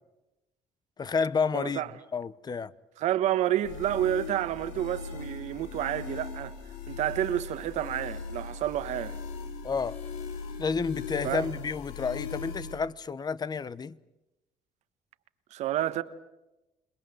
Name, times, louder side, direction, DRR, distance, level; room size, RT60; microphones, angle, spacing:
voice 1, 1.0-1.8 2.1-2.7 9.6-10.0 10.6-14.0, left 5 dB, 35° left, 0.9 m, -30 dB
voice 2, 1.5-1.9 3.0-6.5 6.9-9.2 11.2-11.5 15.5-16.0, right 12 dB, 70° right, 1.3 m, -29 dB
sound 1, 3.6-12.8, left 5 dB, 90° left, 3.0 m, -39 dB
28.0 x 21.0 x 7.8 m
supercardioid pair, 85°, 12 cm